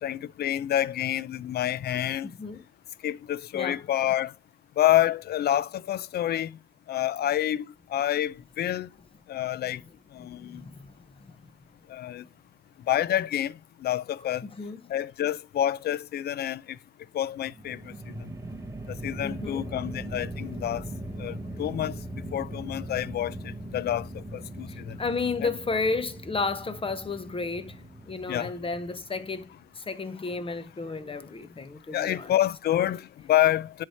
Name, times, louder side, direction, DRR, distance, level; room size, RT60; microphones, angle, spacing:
voice 1, 0.0-2.3 3.0-4.3 4.8-6.5 6.9-8.9 9.3-9.8 10.1-10.6 11.9-12.2 12.9-14.5 14.9-16.8 17.1-17.9 18.9-20.8 21.2-22.0 22.3-25.0 25.4-25.5 28.3-28.5 31.9-33.8, left 12 dB, 55° left, 0.4 m, -28 dB
voice 2, 2.2-2.6 3.5-3.8 10.2-11.4 14.4-14.8 19.2-19.7 24.7-27.8 28.1-29.5 29.8-32.3, left 4 dB, 25° left, 0.8 m, -33 dB
sound 1, 17.4-29.7, right 1 dB, 15° right, 0.9 m, -40 dB
9.9 x 3.3 x 4.2 m
cardioid pair, 90°, 20 cm